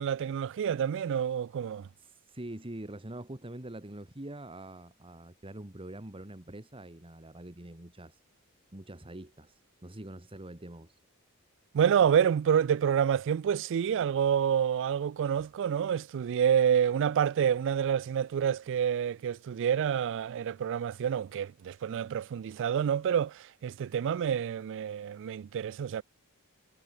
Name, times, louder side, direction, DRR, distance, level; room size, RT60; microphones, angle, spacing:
voice 1, 0.0-1.9 11.7-26.0, right 8 dB, 60° right, 0.3 m, -28 dB
voice 2, 2.0-8.2 8.7-11.0, right 1 dB, 25° right, 1.7 m, -44 dB
head